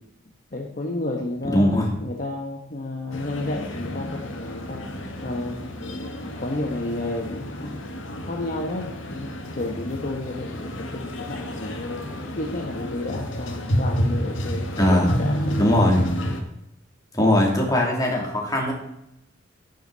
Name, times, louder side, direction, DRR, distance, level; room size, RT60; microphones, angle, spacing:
voice 1, 0.5-4.8 5.2-5.6 5.8-7.8 8.2-12.1 12.3-15.8, left 2 dB, 45° left, 0 dB, 1.3 m, -31 dB
voice 2, 1.5-1.9 14.8-15.1 15.6-16.0 17.1-18.7, left 1 dB, 20° left, -1 dB, 3.0 m, -20 dB
sound 1, 3.1-16.4, equal, 65° left, 1.9 m, -30 dB
10.5 x 10.0 x 4.1 m, 0.80 s
head